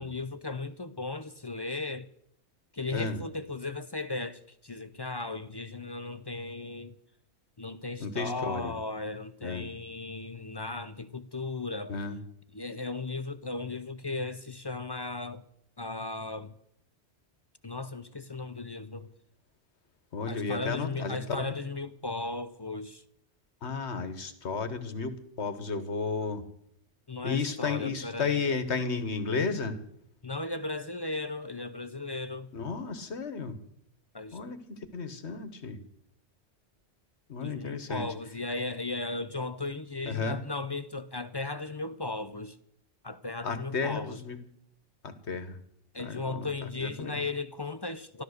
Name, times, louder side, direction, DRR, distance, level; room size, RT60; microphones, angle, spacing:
voice 1, 0.0-2.1 2.7-6.9 7.6-12.0 12.5-15.4 15.8-16.5 17.6-19.1 20.3-23.0 27.1-28.5 30.2-32.5 34.1-34.4 37.4-42.6 43.0-44.2 45.9-48.2, left 3 dB, 30° left, 0.5 m, -36 dB
voice 2, 2.9-3.2 8.0-8.7 9.4-9.7 11.9-12.2 20.1-21.4 23.6-26.4 27.2-29.7 32.5-33.6 34.3-35.8 37.3-38.1 40.0-40.4 43.4-44.4 45.0-45.6 46.0-47.2, left 4 dB, 75° left, 1.7 m, -33 dB
13.5 x 13.0 x 6.5 m
omnidirectional pair, 1.1 m